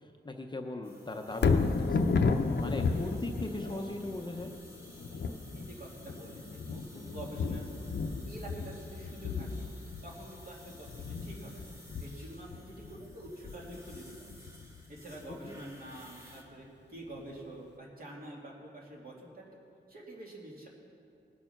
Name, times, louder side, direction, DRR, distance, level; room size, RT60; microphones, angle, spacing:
voice 1, 0.0-2.0 2.6-4.5 15.4-15.6, left 2 dB, 25° left, 3 dB, 0.6 m, -39 dB
sound 1, 0.8-16.4, equal, 15° right, 1.5 m, -56 dB
Thunder, 1.3-15.5 16.0-16.1, left 4 dB, 65° left, 0.7 m, -33 dB
voice 2, 5.5-8.0 8.3-9.7 10.0-11.7 12.0-14.2 14.9-19.6 19.9-20.7, right 1 dB, 50° right, -3 dB, 2.4 m, -47 dB
19.5 x 6.7 x 5.9 m, 2.6 s
wide cardioid pair, 160°, 20 cm